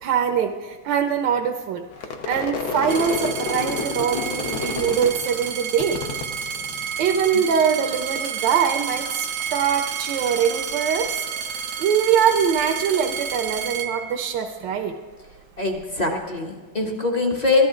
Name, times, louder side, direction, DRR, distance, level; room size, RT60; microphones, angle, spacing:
voice 1, 0.0-1.9 2.3-6.0 7.0-11.3 11.8-15.0, right 7 dB, 75° right, 4 dB, 1.3 m, -23 dB
Crowd / Fireworks, 1.9-7.3 7.6-8.3 8.6-12.1, left 4 dB, 60° left, 1.3 m, -32 dB
sound 1, 2.9-14.6 15.3-15.9, right 7 dB, 90° right, 1.5 m, -30 dB
voice 2, 15.6-17.7, left 3 dB, 30° left, 1 dB, 0.9 m, -23 dB
13.5 x 11.0 x 3.7 m, 1.5 s
omnidirectional pair, 2.1 m